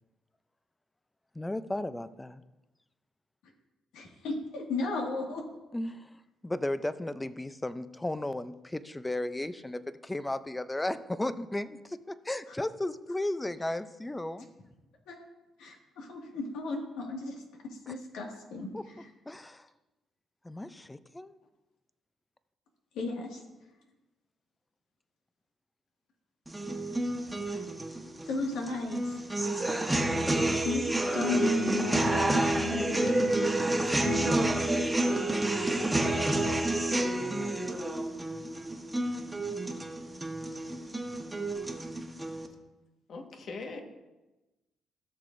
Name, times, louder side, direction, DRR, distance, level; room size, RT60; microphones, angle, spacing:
voice 1, 1.3-2.4 5.7-6.1 6.4-14.5 17.9-18.0 18.7-18.8 19.3-19.7 20.4-21.4 37.2-37.6, left 1 dB, 10° left, 13 dB, 0.5 m, -35 dB
voice 2, 3.9-5.4 15.1-15.2 15.6-17.4 17.6-19.1 22.9-23.4 27.4-27.7 28.3-29.2 30.6-30.8 31.1-33.4 34.0-34.5, left 3 dB, 90° left, 0 dB, 1.9 m, -34 dB
sound 1, 26.5-42.5, right 1 dB, 10° right, 1.2 m, -29 dB
voice 3, 43.1-43.8, left 3 dB, 60° left, 4 dB, 1.5 m, -40 dB
16.5 x 6.7 x 2.6 m, 1.1 s
cardioid pair, 90°, 0 cm